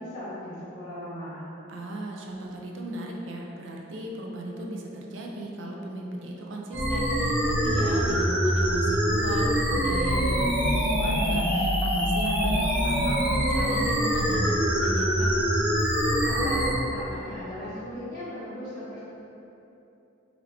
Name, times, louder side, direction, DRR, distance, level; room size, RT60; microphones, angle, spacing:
voice 1, 0.0-1.5 16.2-19.0, left 1 dB, 45° left, -11 dB, 0.5 m, -38 dB
voice 2, 1.7-15.3, right 1 dB, 75° right, -1 dB, 0.4 m, -37 dB
sound 1, 6.7-16.7, equal, 5° right, 0.5 m, -24 dB
3.2 x 2.5 x 3.1 m, 2.9 s
head